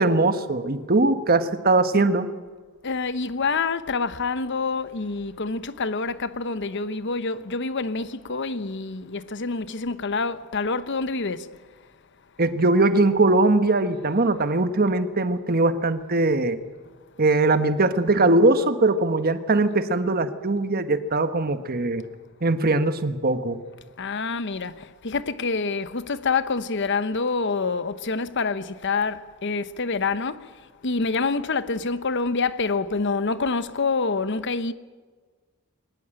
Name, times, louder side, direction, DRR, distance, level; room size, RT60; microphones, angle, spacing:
voice 1, 0.0-2.3 12.4-16.6 17.2-22.0 22.4-23.6, right 2 dB, 45° right, 1.2 m, -21 dB
voice 2, 2.8-11.5 24.0-34.7, left 4 dB, 55° left, 0.9 m, -27 dB
22.0 x 19.0 x 8.9 m
head